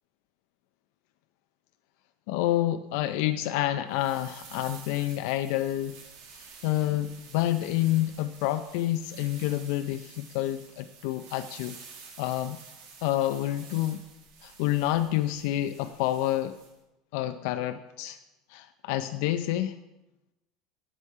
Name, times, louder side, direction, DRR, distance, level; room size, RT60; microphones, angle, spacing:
voice 1, 2.3-6.0 6.3-11.8 12.2-12.6 13.0-14.0 14.4-16.6 17.1-18.2 18.5-19.8, left 14 dB, 75° left, 9 dB, 0.4 m, -28 dB
sound 1, 3.9-16.7, right 5 dB, 75° right, 1.8 m, -50 dB
8.1 x 7.1 x 5.6 m, 0.95 s
supercardioid pair, 115°, 0 cm